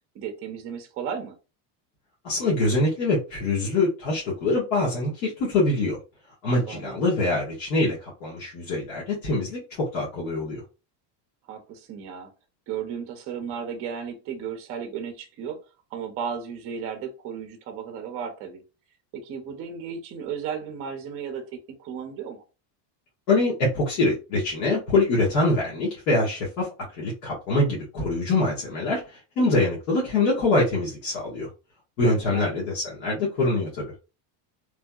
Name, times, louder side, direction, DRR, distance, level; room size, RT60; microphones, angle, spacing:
voice 1, 0.1-1.4 6.7-7.0 11.5-12.3 12.7-15.6 15.9-18.6 19.1-22.4 32.3-32.5, right 7 dB, 30° right, 4 dB, 0.5 m, -34 dB
voice 2, 2.2-6.0 6.4-9.6 9.9-10.6 23.3-26.7 27.0-31.5 32.0-33.8, left 2 dB, 80° left, -5 dB, 1.4 m, -24 dB
3.3 x 2.6 x 2.2 m, 0.30 s
cardioid pair, 170°, 48 cm